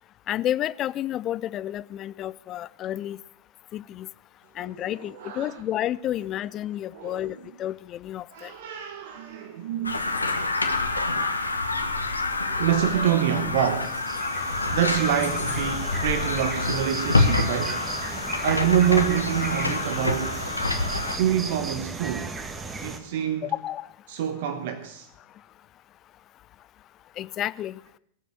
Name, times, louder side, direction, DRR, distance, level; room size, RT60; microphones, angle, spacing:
voice 1, 0.3-3.2 3.7-4.1 4.6-8.5 23.4-23.9 27.2-27.8, left 12 dB, 30° left, 0.5 m, -30 dB
voice 2, 5.1-5.6 6.9-7.3 8.3-10.2 12.5-14.0 14.7-17.8 18.4-20.4 21.1-22.3 22.8-23.5 24.1-25.1, right 10 dB, 55° right, 1.1 m, -26 dB
sound 1, 9.8-21.2, left 3 dB, 80° left, 1.4 m, -27 dB
sound 2, 13.8-23.0, right 3 dB, 15° right, 1.4 m, -36 dB
19.5 x 7.6 x 7.2 m
figure-of-eight pair, 90°, 0 cm